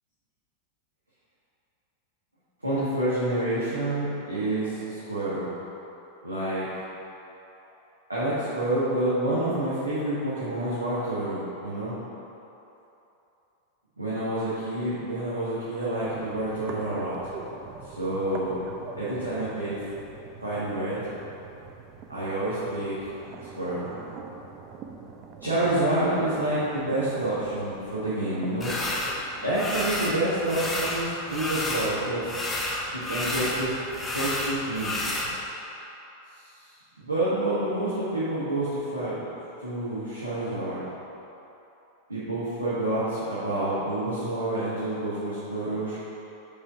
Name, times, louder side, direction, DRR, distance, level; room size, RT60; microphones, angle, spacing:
voice 1, 2.6-5.5 6.2-6.7 8.1-11.9 14.0-17.2 17.8-18.6 18.9-19.8 20.4-21.1 22.1-23.0 23.4-23.9 25.4-28.7 29.4-32.3 32.9-33.8 34.1-35.1 36.4-36.5 37.0-39.2 39.6-40.8 42.1-46.0, right 1 dB, 85° right, -12 dB, 1.4 m, -28 dB
sound 1, 16.0-35.5, right 5 dB, 35° right, 0.5 m, -45 dB
sound 2, 28.6-29.2 29.5-30.2 30.5-32.0 32.2-35.3, left 1 dB, 15° left, 0.8 m, -30 dB
5.4 x 5.0 x 4.8 m, 3.0 s
figure-of-eight pair, 90°, 0 cm